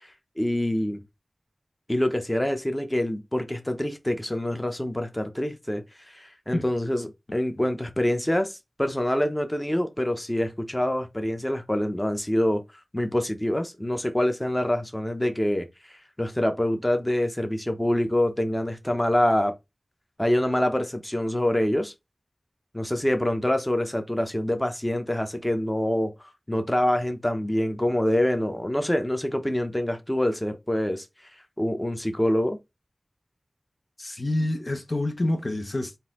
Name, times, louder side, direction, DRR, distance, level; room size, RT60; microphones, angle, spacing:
voice 1, 0.4-1.0 1.9-8.5 8.8-12.6 12.9-19.5 20.2-21.9 22.7-26.1 26.5-31.0 31.6-32.6, left 1 dB, 15° left, 0.9 m, -25 dB
voice 2, 34.0-36.0, left 1 dB, 50° left, 0.9 m, -27 dB
4.1 x 2.7 x 3.7 m
wide cardioid pair, 50°, 0 cm